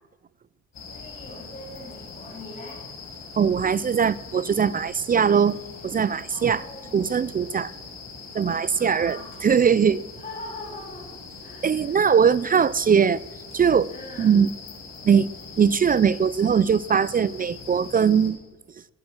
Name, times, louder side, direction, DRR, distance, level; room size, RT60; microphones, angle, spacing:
sound 1, 0.7-18.3, left 4 dB, 65° left, 7.3 m, -42 dB
voice 1, 0.9-2.8 6.3-7.1 8.7-9.5 10.2-12.2 13.9-14.3, left 2 dB, 25° left, 4.5 m, -42 dB
voice 2, 3.4-6.6 6.9-7.7 8.3-10.0 11.6-13.2 13.5-13.9 14.2-14.5 15.0-15.3 15.6-18.4, right 7 dB, 30° right, 0.4 m, -21 dB
16.5 x 12.0 x 6.2 m
cardioid pair, 90°, 30 cm